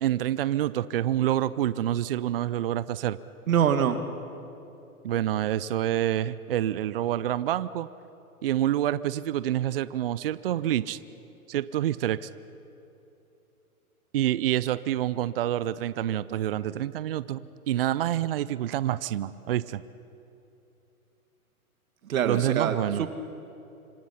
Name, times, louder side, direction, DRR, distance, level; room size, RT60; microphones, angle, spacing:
voice 1, 0.0-3.2 5.0-7.9 8.4-11.0 11.5-12.3 14.1-19.8 22.2-23.0, right 12 dB, 40° right, 17 dB, 0.5 m, -27 dB
voice 2, 3.5-4.0 22.1-23.1, right 8 dB, 65° right, 8 dB, 1.9 m, -24 dB
26.5 x 24.0 x 5.7 m, 2.9 s
hypercardioid pair, 145°, 45 cm